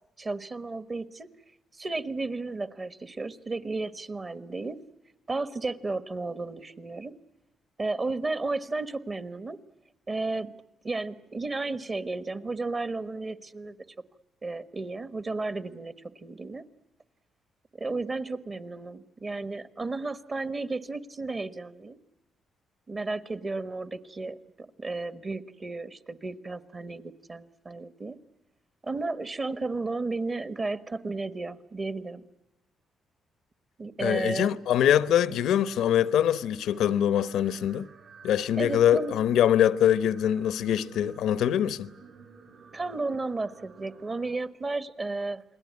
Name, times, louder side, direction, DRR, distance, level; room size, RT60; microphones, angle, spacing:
voice 1, 0.2-1.3 1.7-4.8 5.3-7.1 7.8-9.6 10.1-10.5 10.8-13.8 14.4-16.6 17.8-22.0 22.9-28.2 28.8-32.2 33.8-34.5 35.3-35.4 38.5-39.2 42.7-45.4, right 3 dB, 30° right, 1.4 m, -33 dB
voice 2, 34.0-37.9 38.2-41.9, left 10 dB, 85° left, 0.9 m, -23 dB
sound 1, 35.0-44.3, right 5 dB, 65° right, 7.2 m, -53 dB
29.5 x 21.0 x 9.5 m
cardioid pair, 100°, 0 cm